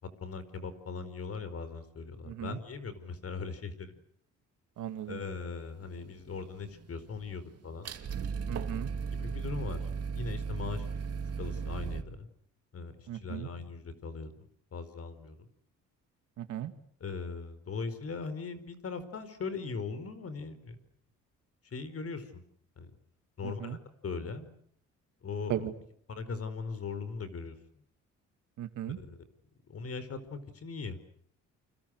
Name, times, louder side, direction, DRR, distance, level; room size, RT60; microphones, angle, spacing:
voice 1, 0.0-4.0 5.1-7.9 9.1-10.9 11.4-12.3 12.7-15.5 17.0-20.8 21.6-22.4 22.8-22.9 23.4-23.8 24.0-24.5 25.2-25.7 26.1-27.6 29.0-29.2 29.6-31.0, left 4 dB, 50° left, 13 dB, 4.8 m, -39 dB
voice 2, 2.3-2.6 4.8-5.2 8.5-8.9 13.1-13.5 16.4-16.7 23.6-23.8 25.5-25.7 28.6-29.0, right 11 dB, 75° right, 9 dB, 2.6 m, -36 dB
sound 1, 6.0-6.9 7.2-12.0, right 5 dB, 55° right, 2.4 m, -36 dB
29.5 x 26.0 x 6.6 m, 0.65 s
cardioid pair, 90°, 30 cm